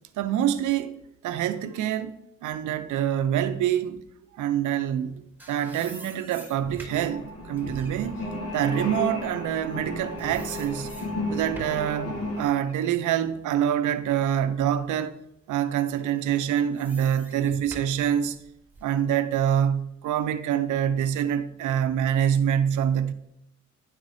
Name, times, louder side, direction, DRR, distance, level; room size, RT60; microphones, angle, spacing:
voice 1, 0.2-0.9 1.2-2.1 2.4-4.0 4.4-8.2 8.5-10.9 11.3-15.1 15.5-18.4 18.8-23.1, right 10 dB, 80° right, 0.7 m, -26 dB
sound 1, 5.1-9.9 10.2-11.9 12.4-14.3 14.8-14.9 16.0-19.0, right 2 dB, 5° right, 2.5 m, -47 dB
sound 2, 6.9-12.5, left 1 dB, 55° left, 1.9 m, -34 dB
10.0 x 4.0 x 4.8 m
cardioid pair, 90°, 30 cm